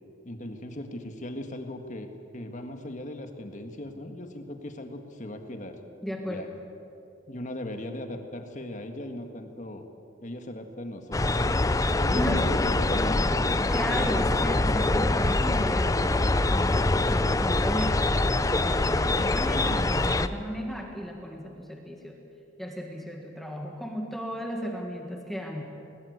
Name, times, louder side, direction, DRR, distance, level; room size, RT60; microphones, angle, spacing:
voice 1, 0.2-5.8 6.3-6.5 7.3-9.8 10.2-11.4 12.0-13.3 19.0-19.3, left 1 dB, 35° left, 5 dB, 1.8 m, -37 dB
voice 2, 6.0-6.5 12.1-12.4 13.5-18.1 18.4-22.2 22.6-25.6, equal, ahead, 1 dB, 1.7 m, -34 dB
sound 1, 11.1-20.3, left 2 dB, 15° left, 0.5 m, -24 dB
21.0 x 19.5 x 8.1 m, 2.7 s
head